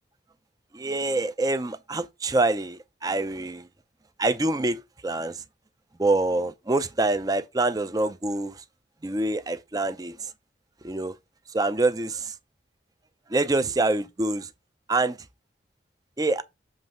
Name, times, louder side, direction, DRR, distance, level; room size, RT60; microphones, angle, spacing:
voice 1, 0.7-3.7 4.2-5.4 6.0-8.6 9.0-10.3 10.8-11.2 11.5-12.3 13.3-14.5 14.9-15.2 16.2-16.4, right 2 dB, 20° right, 0.4 m, -26 dB
7.4 x 3.1 x 5.3 m
head